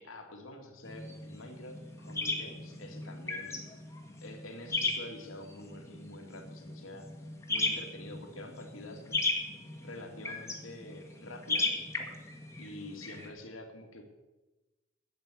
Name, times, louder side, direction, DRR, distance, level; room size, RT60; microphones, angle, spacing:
voice 1, 0.0-3.7 4.2-7.1 7.5-9.2 9.8-11.8 12.6-14.0, left 1 dB, 90° left, 3 dB, 2.2 m, -47 dB
sound 1, 0.8-13.3, left 2 dB, 15° left, 1.5 m, -37 dB
8.9 x 8.0 x 8.3 m, 1.1 s
head